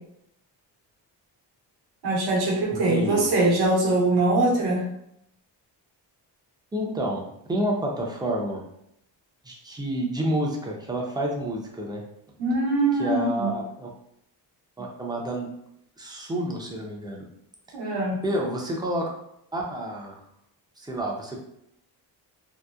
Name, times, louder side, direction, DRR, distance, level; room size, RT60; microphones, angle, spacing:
voice 1, 2.0-4.8 12.4-13.6 17.7-18.2, right 2 dB, 60° right, -2 dB, 0.9 m, -22 dB
voice 2, 2.7-3.3 6.7-8.6 9.4-12.0 13.0-13.9 14.8-15.5 16.0-17.2 17.9-18.0 18.2-19.1 19.5-20.2 20.8-21.4, right 1 dB, 10° right, -1 dB, 0.5 m, -29 dB
2.8 x 2.0 x 2.3 m, 0.77 s
cardioid pair, 90°, 42 cm